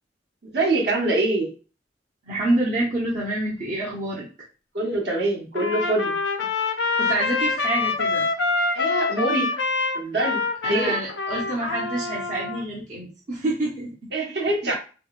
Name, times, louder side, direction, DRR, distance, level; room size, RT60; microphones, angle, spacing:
voice 1, 0.5-1.5 4.7-6.2 8.7-9.5 9.9-11.0 14.1-14.7, right 2 dB, 65° right, -3 dB, 1.3 m, -24 dB
voice 2, 2.3-4.3 7.0-8.3 10.6-14.1, right 2 dB, 45° right, -6 dB, 0.9 m, -27 dB
Trumpet, 5.5-12.6, left 3 dB, 75° left, 0.5 m, -25 dB
4.8 x 2.1 x 2.5 m, 0.35 s
head